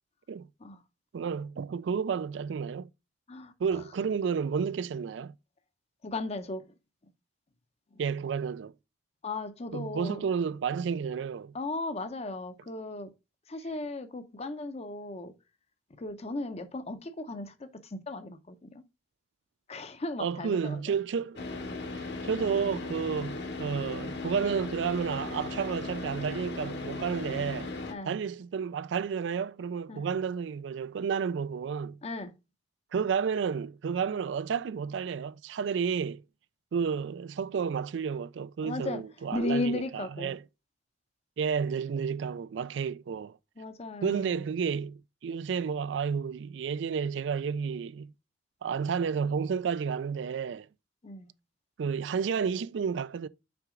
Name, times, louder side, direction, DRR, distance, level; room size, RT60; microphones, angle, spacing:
voice 1, 1.1-2.9 3.6-5.3 8.0-8.7 9.7-11.5 20.2-21.5 22.2-27.7 28.1-32.0 32.9-36.2 36.7-40.4 41.4-43.4 44.0-48.1 48.6-50.7 51.8-53.3, right 6 dB, 75° right, 0.4 m, -31 dB
voice 2, 6.0-6.7 7.9-8.0 9.2-10.2 11.5-13.1 13.5-15.3 16.0-18.8 19.7-20.8 27.9-28.1 29.9-30.0 32.0-32.3 38.6-39.0 39.3-40.4 43.6-44.4 51.0-51.3, left 2 dB, 35° left, 0.6 m, -36 dB
Car / Idling, 21.4-27.9, left 3 dB, 65° left, 1.3 m, -37 dB
6.0 x 4.7 x 3.7 m
head